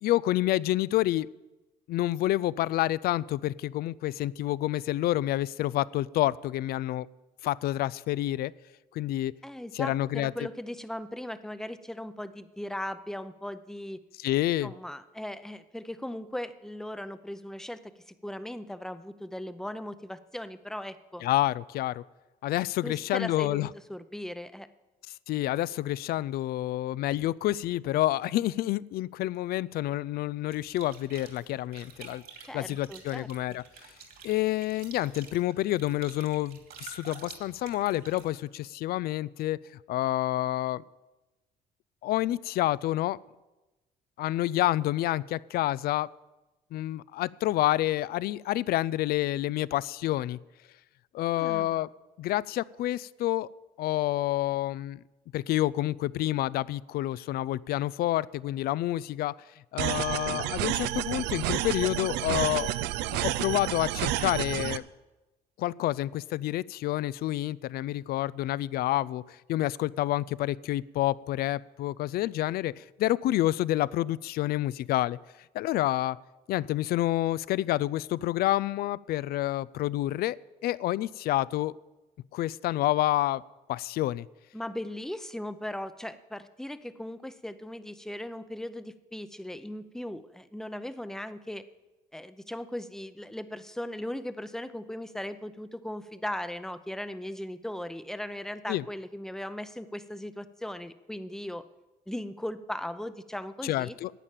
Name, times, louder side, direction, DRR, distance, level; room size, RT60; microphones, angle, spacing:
voice 1, 0.0-1.3 1.9-7.1 7.4-8.5 8.9-9.3 9.7-10.3 14.2-14.7 21.2-22.0 22.4-23.7 25.3-32.2 32.5-33.6 34.2-39.6 39.9-40.8 42.0-43.2 44.2-46.1 46.7-50.4 51.1-51.9 52.2-53.5 53.8-55.0 55.3-59.3 59.7-62.7 63.1-64.8 65.6-75.2 75.5-76.2 76.5-80.4 80.6-81.7 82.3-83.4 83.7-84.3 98.7-98.8 103.6-104.1, left 15 dB, 65° left, 21 dB, 0.4 m, -28 dB
voice 2, 9.4-14.0 14.6-17.8 18.2-21.2 22.8-24.7 32.4-33.6 51.4-51.9 84.5-91.6 92.1-101.6 102.1-103.9, left 1 dB, 5° left, 12 dB, 0.6 m, -38 dB
sound 1, 30.5-38.3, right 6 dB, 65° right, 2.6 m, -49 dB
sound 2, 59.8-64.8, right 14 dB, 90° right, 0.5 m, -30 dB
11.0 x 8.9 x 7.5 m, 1.1 s
cardioid pair, 110°, 17 cm